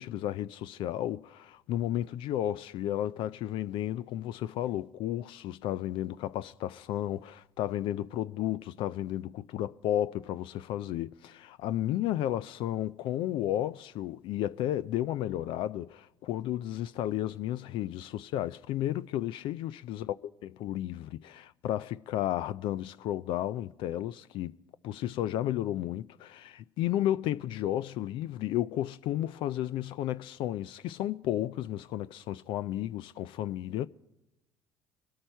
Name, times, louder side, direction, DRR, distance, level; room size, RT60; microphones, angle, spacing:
voice 1, 0.0-20.2 20.4-24.5 24.8-33.9, left 12 dB, 65° left, 0.4 m, -33 dB
24.5 x 8.7 x 4.5 m
hypercardioid pair, 65°, 9 cm